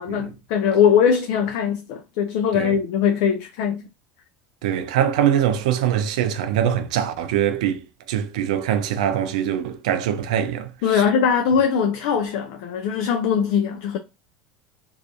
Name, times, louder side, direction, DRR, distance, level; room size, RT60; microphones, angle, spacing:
voice 1, 0.0-3.9 10.8-14.0, left 7 dB, 65° left, 0.3 m, -21 dB
voice 2, 4.6-11.0, right 10 dB, 75° right, 0.4 m, -23 dB
2.6 x 2.3 x 2.5 m
hypercardioid pair, 85°, 4 cm